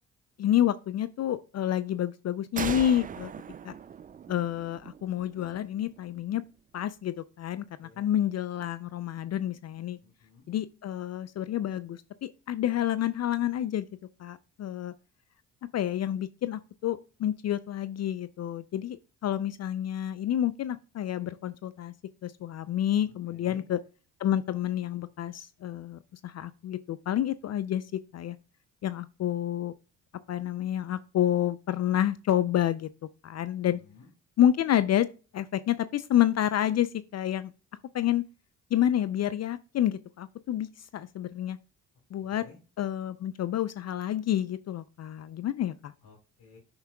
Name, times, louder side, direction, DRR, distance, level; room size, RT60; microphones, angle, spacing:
voice 1, 0.4-3.3 3.6-3.7 4.3-6.4 6.7-10.0 10.5-13.9 14.2-14.9 15.7-21.9 22.2-23.8 24.2-28.4 28.8-29.7 30.3-32.9 33.2-33.8 34.4-35.1 35.3-37.5 37.9-38.2 38.7-41.6 42.1-42.4 42.8-45.9, left 11 dB, 40° left, 0.5 m, -29 dB
sound 1, 2.6-6.1, right 7 dB, 25° right, 0.4 m, -39 dB
voice 2, 10.0-10.5 23.3-23.6 33.7-34.1 42.2-42.6 46.0-46.6, left 4 dB, 70° left, 3.6 m, -54 dB
9.4 x 5.7 x 2.2 m
hypercardioid pair, 55°, 40 cm